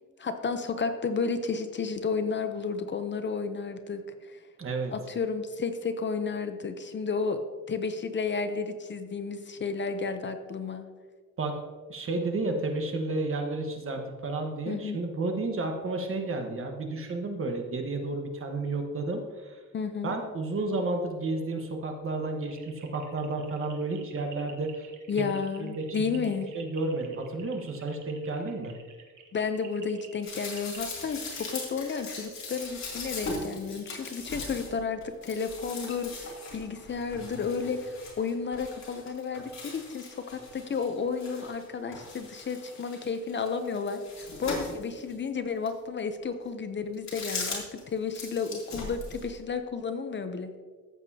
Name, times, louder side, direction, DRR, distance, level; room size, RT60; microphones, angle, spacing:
voice 1, 0.2-4.4 4.9-7.4 7.7-10.9 14.7-15.0 19.7-20.1 25.1-26.5 29.3-50.5, left 5 dB, 40° left, 8 dB, 0.6 m, -32 dB
voice 2, 4.6-4.9 11.4-11.6 11.9-19.6 20.0-24.9 25.2-25.3 25.6-26.3 26.5-28.7, right 2 dB, 45° right, 3 dB, 1.3 m, -32 dB
sound 1, 22.5-30.9, right 6 dB, 80° right, 1.3 m, -51 dB
sound 2, 30.2-41.6 41.9-45.1 45.7-45.8 46.9-47.8 48.1-49.4, left 3 dB, 65° left, 3.0 m, -40 dB
13.5 x 8.0 x 2.8 m, 1.5 s
wide cardioid pair, 145°, 30 cm